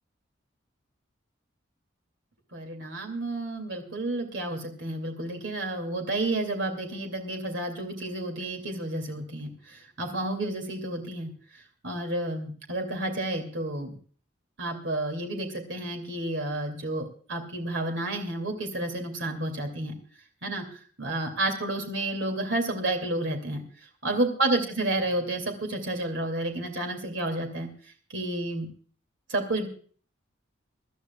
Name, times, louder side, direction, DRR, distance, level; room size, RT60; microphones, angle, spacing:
voice 1, 2.5-11.3 11.8-14.0 14.6-19.9 20.4-20.6 21.0-23.6 24.0-27.7 28.1-28.7 29.3-29.7, right 2 dB, 65° right, 5 dB, 2.6 m, -30 dB
25.0 x 12.5 x 2.3 m, 0.43 s
head